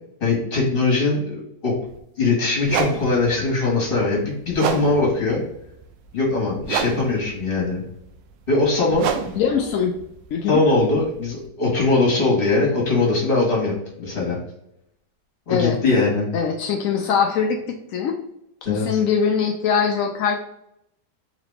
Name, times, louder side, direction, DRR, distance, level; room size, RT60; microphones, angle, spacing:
voice 1, 0.2-1.7 2.2-5.4 6.1-7.8 8.5-9.1 10.5-13.7 14.0-14.4 15.5-16.3 18.6-19.0, left 3 dB, 30° left, -4 dB, 1.7 m, -21 dB
sound 1, 1.9-2.0 2.6-11.5, right 6 dB, 90° right, 1.3 m, -31 dB
voice 2, 9.4-10.0 10.3-10.6 15.5-15.8 16.3-18.2 18.6-20.4, left 6 dB, 75° left, 3 dB, 0.7 m, -22 dB
3.9 x 2.9 x 3.3 m, 0.79 s
omnidirectional pair, 1.9 m